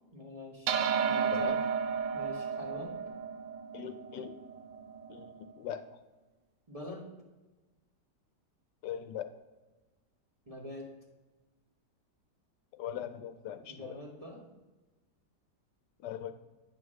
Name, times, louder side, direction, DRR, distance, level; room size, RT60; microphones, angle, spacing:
voice 1, 0.1-0.8 1.1-1.6 2.1-3.0 6.7-7.0 10.5-10.9 13.7-14.5, left 1 dB, 25° right, -3 dB, 1.0 m, -45 dB
sound 1, 0.7-5.3, right 6 dB, 70° right, 0.7 m, -33 dB
voice 2, 1.3-1.6 3.7-4.3 5.1-6.0 8.8-9.3 12.8-14.0 16.0-16.3, left 9 dB, 85° left, 9 dB, 1.2 m, -40 dB
9.3 x 3.2 x 6.3 m, 1.2 s
omnidirectional pair, 1.8 m